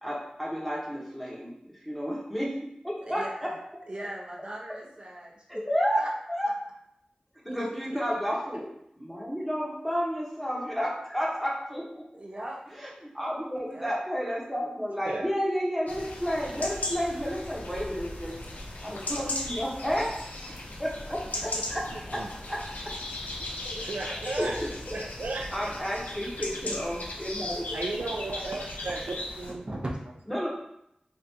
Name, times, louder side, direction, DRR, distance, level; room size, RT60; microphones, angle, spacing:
voice 1, 0.0-2.5 2.8-3.5 5.5-6.0 6.4-6.5 7.4-8.6 9.0-12.0 12.8-18.4 18.8-20.1 20.5-21.8 22.1-22.2 22.5-22.6 23.6-23.8 24.4-25.0 25.5-27.8 30.3-30.5, equal, 5° left, -4 dB, 0.9 m, -31 dB
voice 2, 3.1-3.6 3.9-5.6 6.0-6.1 6.4-6.5 7.5-7.6 12.1-12.7 13.7-14.0 21.2-21.8 22.1-22.2 26.4-27.1 29.6-30.2, right 1 dB, 40° right, -3 dB, 0.7 m, -40 dB
sound 1, 15.9-29.5, left 2 dB, 90° left, 0.4 m, -37 dB
voice 3, 23.7-24.6 24.9-25.7 27.7-29.6, right 2 dB, 85° right, 0 dB, 0.4 m, -34 dB
3.4 x 2.5 x 2.7 m, 0.78 s
wide cardioid pair, 65°, 3 cm